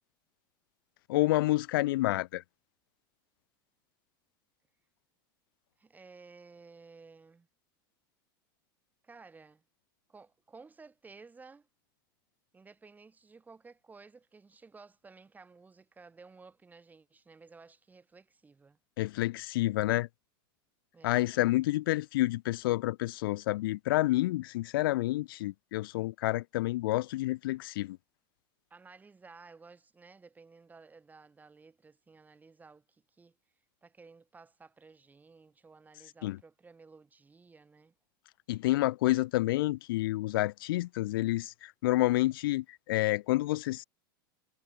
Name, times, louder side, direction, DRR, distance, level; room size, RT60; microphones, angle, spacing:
voice 1, 1.1-2.4 19.0-20.1 21.0-28.0 36.2-36.4 38.5-43.8, left 17 dB, 80° left, 0.5 m, -29 dB
voice 2, 5.8-7.5 9.0-9.6 10.1-11.7 12.5-18.8 20.9-21.3 28.7-33.4 33.8-37.9, right 4 dB, 15° right, 6.0 m, -55 dB
supercardioid pair, 125°, 12 cm